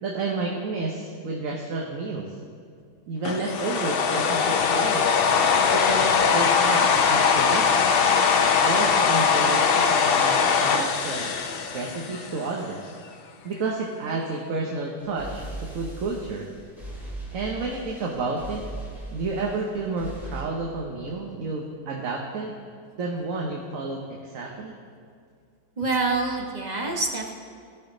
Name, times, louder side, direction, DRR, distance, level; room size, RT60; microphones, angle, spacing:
voice 1, 0.0-2.4 3.1-5.2 5.7-7.8 8.6-11.3 11.7-13.0 13.4-16.5 17.3-18.6 19.1-22.5 23.0-24.8, right 3 dB, 60° right, 0 dB, 1.2 m, -31 dB
sound 1, 3.2-12.5, left 6 dB, 70° left, 0.5 m, -21 dB
sound 2, 15.0-20.4, right 2 dB, ahead, 1.9 m, -39 dB
voice 2, 25.8-27.3, right 3 dB, 30° right, 0 dB, 1.0 m, -26 dB
16.5 x 5.8 x 3.9 m, 2.2 s
omnidirectional pair, 1.7 m